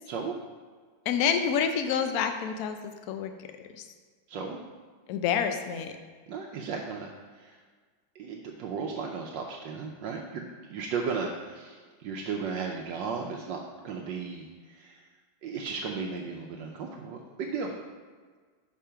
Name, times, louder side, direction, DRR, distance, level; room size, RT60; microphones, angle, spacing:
voice 1, 0.1-0.4 4.3-4.6 6.3-7.1 7.3-7.6 8.1-15.0 15.4-17.7, right 5 dB, 75° right, 0 dB, 1.2 m, -35 dB
voice 2, 1.1-3.3 3.8-3.9 5.1-5.9, left 7 dB, 70° left, 7 dB, 0.8 m, -28 dB
5.3 x 4.9 x 5.6 m, 1.5 s
omnidirectional pair, 2.1 m